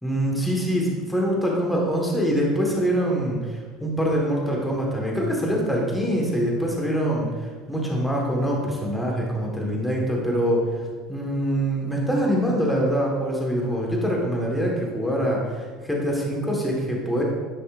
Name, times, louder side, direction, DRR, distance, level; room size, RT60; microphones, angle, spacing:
voice 1, 0.0-3.4 3.8-7.3 7.7-10.6 11.1-15.4 15.8-17.2, equal, 5° left, -2 dB, 1.3 m, -24 dB
10.0 x 5.3 x 2.5 m, 1.5 s
cardioid pair, 135°, 0 cm